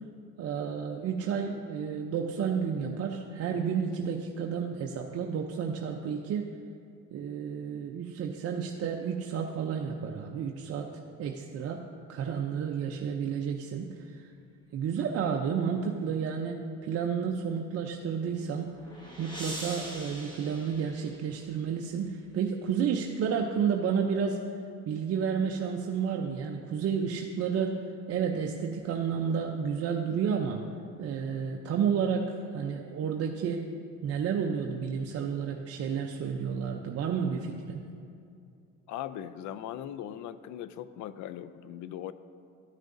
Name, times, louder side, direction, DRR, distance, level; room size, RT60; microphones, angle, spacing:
voice 1, 0.4-6.5 7.1-10.9 11.2-11.8 12.1-14.3 14.7-18.7 19.2-24.4 24.9-27.8 28.1-30.6 31.0-33.7 34.0-37.8, right 7 dB, 45° right, 1 dB, 0.6 m, -31 dB
sound 1, 18.3-21.6, right 1 dB, 15° left, 1.6 m, -43 dB
voice 2, 38.9-42.1, left 11 dB, 65° left, 14 dB, 0.5 m, -39 dB
13.0 x 6.3 x 2.6 m, 2.5 s
supercardioid pair, 95°, 32 cm